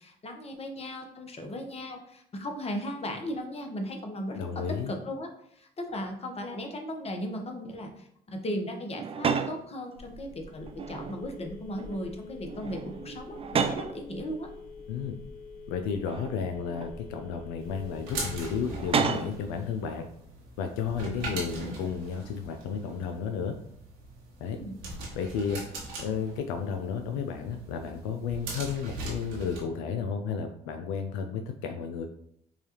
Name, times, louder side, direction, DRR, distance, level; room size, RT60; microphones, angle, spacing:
voice 1, 0.0-14.5 24.4-24.8, equal, 35° left, 4 dB, 1.0 m, -37 dB
voice 2, 4.3-4.9 14.9-15.2 15.7-20.1 20.6-23.6 24.4-24.6 25.1-25.6 26.0-32.1, left 6 dB, 85° left, 6 dB, 0.4 m, -32 dB
sound 1, 8.9-9.6 10.7-11.4 11.7-12.1 12.4-14.0 14.8-14.9 16.0-17.0 18.7-19.4, right 6 dB, 35° right, 0.4 m, -31 dB
Telephone, 10.0-18.9, left 4 dB, 60° left, 0.9 m, -46 dB
sound 2, 17.6-29.6, right 2 dB, 80° right, 1.2 m, -41 dB
5.4 x 2.4 x 2.9 m, 0.69 s
hypercardioid pair, 60°, 18 cm